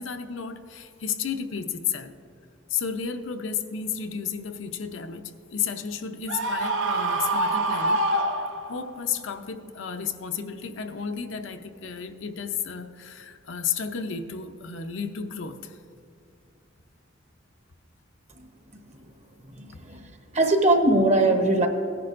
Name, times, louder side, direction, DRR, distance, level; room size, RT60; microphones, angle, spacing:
voice 1, 0.0-2.1 2.7-8.0 8.7-15.8, left 7 dB, 80° left, 6 dB, 0.6 m, -32 dB
Screaming, 6.3-9.0, right 2 dB, 75° right, 0.7 m, -25 dB
voice 2, 19.6-20.0 20.3-21.7, right 2 dB, 35° right, 4 dB, 1.0 m, -20 dB
17.5 x 10.5 x 2.5 m, 2.5 s
head